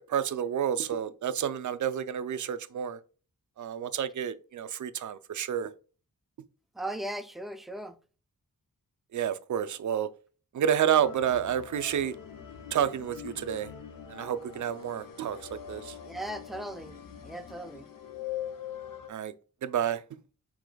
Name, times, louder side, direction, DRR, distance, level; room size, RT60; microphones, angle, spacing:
voice 1, 0.0-3.0 3.6-5.7 9.1-10.1 10.5-12.1 12.7-13.7 14.1-15.4 15.7-15.9 19.1-19.3 19.6-20.0, right 9 dB, 60° right, 0.5 m, -29 dB
voice 2, 6.7-8.0 16.0-17.9, right 1 dB, ahead, 0.4 m, -38 dB
sound 1, 11.0-19.1, left 9 dB, 70° left, 0.8 m, -43 dB
4.8 x 3.8 x 2.2 m
wide cardioid pair, 85°, 35 cm